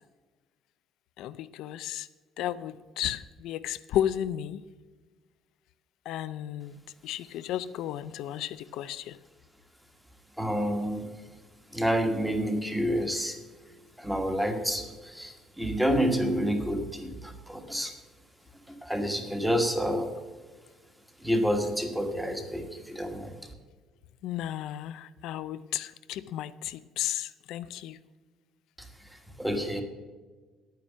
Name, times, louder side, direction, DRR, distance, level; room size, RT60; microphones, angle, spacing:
voice 1, 1.2-2.1 2.4-4.6 6.1-6.7 7.0-9.2 24.2-28.0, left 11 dB, 75° left, 0.5 m, -33 dB
voice 2, 10.4-11.1 11.7-13.4 14.0-17.9 18.7-20.1 21.2-23.4 28.8-28.9 29.4-29.8, equal, 5° right, 1.4 m, -28 dB
10.5 x 9.3 x 7.3 m
cardioid pair, 175°, 0 cm